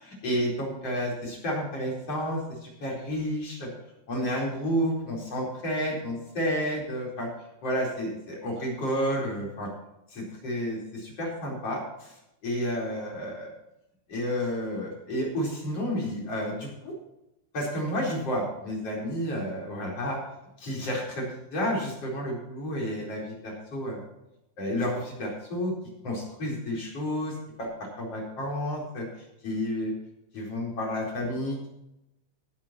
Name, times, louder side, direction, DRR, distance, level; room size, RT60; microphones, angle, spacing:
voice 1, 0.0-3.7 4.1-7.3 7.6-9.7 10.1-12.1 12.4-13.5 14.1-16.9 17.5-20.2 20.6-24.0 24.6-25.7 26.0-29.0 29.4-29.9 30.3-31.7, equal, 30° left, -2 dB, 4.6 m, -31 dB
18.5 x 11.0 x 3.0 m, 0.87 s
omnidirectional pair, 5.8 m